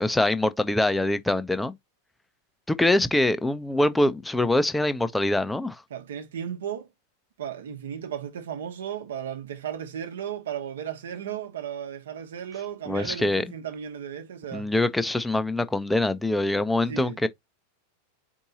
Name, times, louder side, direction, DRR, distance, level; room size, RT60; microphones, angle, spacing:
voice 1, 0.0-1.7 2.7-5.8 12.9-13.4 14.5-17.3, left 1 dB, 5° left, 0.5 m, -24 dB
voice 2, 5.9-6.9 7.4-14.7 16.9-17.3, right 9 dB, 60° right, 1.0 m, -35 dB
4.5 x 2.7 x 4.0 m
figure-of-eight pair, 90°, 0 cm